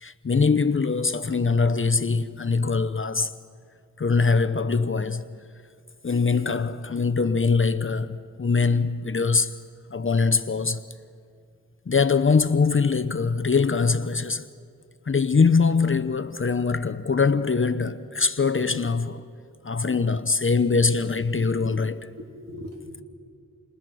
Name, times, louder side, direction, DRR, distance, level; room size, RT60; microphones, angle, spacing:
voice 1, 0.0-3.3 4.0-5.2 6.0-9.6 9.9-10.8 11.9-14.5 15.1-19.2 19.6-22.1, left 4 dB, 40° left, 0.7 m, -23 dB
voice 2, 22.2-23.0, left 1 dB, 50° right, 2.9 m, -41 dB
29.5 x 28.5 x 6.2 m
wide cardioid pair, 100°, 32 cm